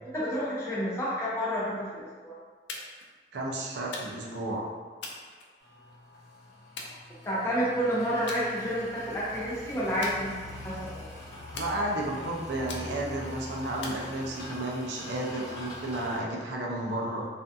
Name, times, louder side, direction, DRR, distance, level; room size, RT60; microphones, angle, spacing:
voice 1, 0.0-2.3 7.2-11.2, equal, 15° left, -9 dB, 0.6 m, -30 dB
sound 1, 2.7-3.1 3.9-4.4 5.0-6.0 6.8-7.6 8.3-8.5 8.9-9.2 10.0-10.8 11.6-12.2 12.7-13.2 13.8-14.6, left 3 dB, 90° left, 0.4 m, -42 dB
voice 2, 3.3-4.7 11.5-17.3, right 1 dB, 70° right, -2 dB, 0.4 m, -32 dB
sound 2, 5.6-16.2, left 1 dB, 60° left, 0.9 m, -44 dB
2.5 x 2.3 x 2.5 m, 1.5 s
head